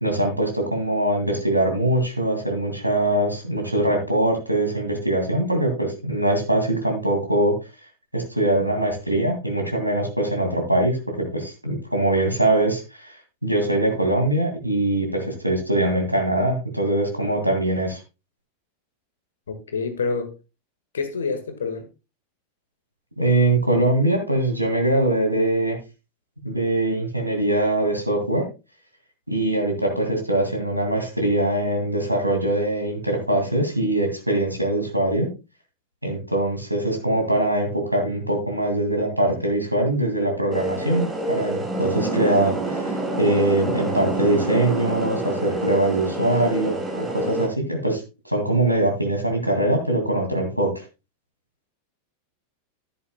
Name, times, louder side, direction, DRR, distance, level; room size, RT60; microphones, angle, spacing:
voice 1, 0.0-7.5 8.1-13.2 13.4-18.0 23.2-25.8 26.4-28.4 29.3-35.3 36.0-42.8 43.2-50.7, right 1 dB, 90° right, 2.3 m, -22 dB
voice 2, 19.5-20.3 20.9-21.9, left 4 dB, 70° left, 1.7 m, -27 dB
sound 1, 40.5-47.5, right 2 dB, 5° right, 2.6 m, -27 dB
11.5 x 9.7 x 2.3 m
figure-of-eight pair, 90°, 0 cm